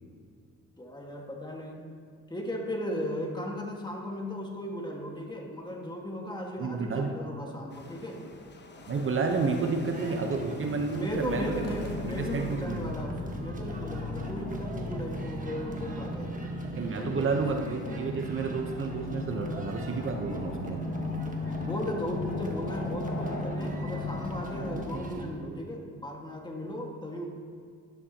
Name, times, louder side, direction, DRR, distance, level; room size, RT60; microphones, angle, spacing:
voice 1, 0.8-1.9 2.3-8.2 10.7-16.5 16.9-17.4 21.4-27.3, left 1 dB, 15° left, 0 dB, 1.7 m, -36 dB
voice 2, 6.6-7.1 8.9-11.5 12.0-12.9 16.8-20.8, right 4 dB, 45° right, 3 dB, 1.0 m, -30 dB
sound 1, 7.7-13.0, left 3 dB, 35° left, 1.1 m, -46 dB
sound 2, 9.9-25.2, right 2 dB, 25° right, 1.5 m, -41 dB
sound 3, 11.1-25.0, left 2 dB, 55° left, 2.5 m, -37 dB
12.5 x 11.5 x 2.9 m, 2.1 s
cardioid pair, 90°, 30 cm